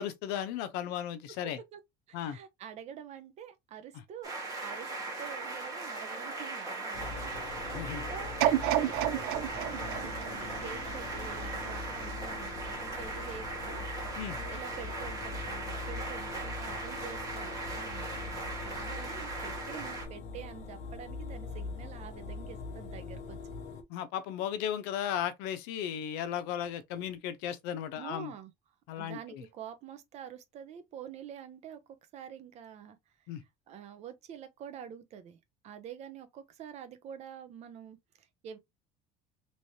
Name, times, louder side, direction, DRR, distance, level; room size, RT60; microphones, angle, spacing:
voice 1, 0.0-1.6 2.1-2.4 7.7-8.0 14.2-14.4 23.9-28.3 28.9-29.4 33.3-33.4, left 10 dB, 90° left, 0.7 m, -35 dB
voice 2, 1.4-1.8 2.1-4.3 4.6-4.9 5.2-23.4 28.0-28.5 29.0-31.8 32.1-33.0 33.7-35.4 35.6-38.6, right 8 dB, 40° right, 0.7 m, -47 dB
sound 1, 4.2-20.1, right 3 dB, 20° right, 1.5 m, -39 dB
sound 2, 6.9-23.8, left 4 dB, 45° left, 0.7 m, -42 dB
sound 3, 8.4-11.5 12.0-12.1, right 13 dB, 80° right, 0.4 m, -31 dB
3.2 x 3.1 x 2.7 m
cardioid pair, 165°, 17 cm